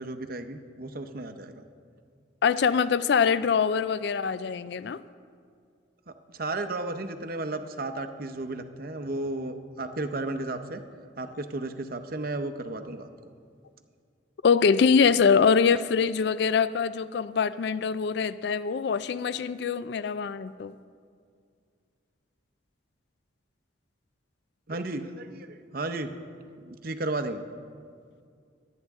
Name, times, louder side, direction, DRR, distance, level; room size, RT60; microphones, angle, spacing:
voice 1, 0.0-1.7 6.1-10.8 11.2-13.1 24.7-26.1 26.6-27.5, right 2 dB, 45° right, 8 dB, 0.7 m, -34 dB
voice 2, 2.4-5.0 14.4-20.7, left 6 dB, 55° left, 16 dB, 0.3 m, -24 dB
24.0 x 9.6 x 3.6 m, 2.2 s
head